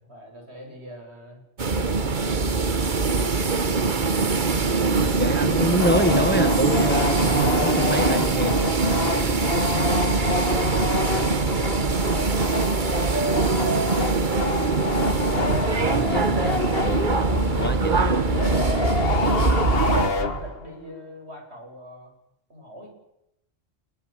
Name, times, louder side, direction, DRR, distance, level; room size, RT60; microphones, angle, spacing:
voice 1, 0.0-4.1 8.8-13.7 18.4-19.8 20.2-22.1 22.5-22.9, equal, 75° right, 2 dB, 8.1 m, -44 dB
sound 1, 1.6-20.1, right 4 dB, 45° right, 1.4 m, -23 dB
voice 2, 5.0-7.3 7.6-8.5 8.9-9.4 15.7-18.2, equal, 10° left, 12 dB, 1.2 m, -27 dB
sound 2, 5.0-20.5, right 4 dB, 30° right, 2.2 m, -36 dB
sound 3, 5.8-20.8, left 4 dB, 60° left, 1.7 m, -28 dB
27.5 x 22.0 x 8.9 m, 0.83 s
omnidirectional pair, 1.1 m